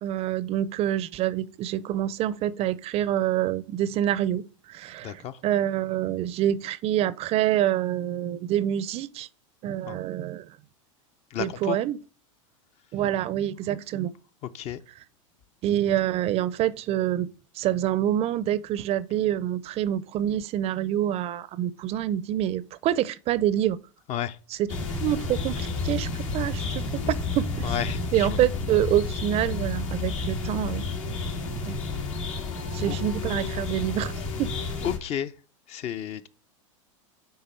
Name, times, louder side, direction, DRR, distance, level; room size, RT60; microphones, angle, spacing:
voice 1, 0.0-9.3 9.6-10.5 11.4-12.0 12.9-14.1 15.6-17.3 17.6-23.8 24.6-24.7 25.0-27.7 28.1-30.8 31.7-31.8 32.7-34.5, right 12 dB, 35° right, 0.5 m, -26 dB
voice 2, 5.0-5.4 9.8-10.0 11.3-11.8 14.5-14.8 24.1-24.4 27.6-28.4 32.8-33.0 34.8-35.3 35.7-36.3, left 10 dB, 40° left, 0.6 m, -32 dB
sound 1, 24.7-35.0, left 3 dB, 75° left, 2.1 m, -31 dB
9.4 x 3.5 x 4.4 m
hypercardioid pair, 110°, 17 cm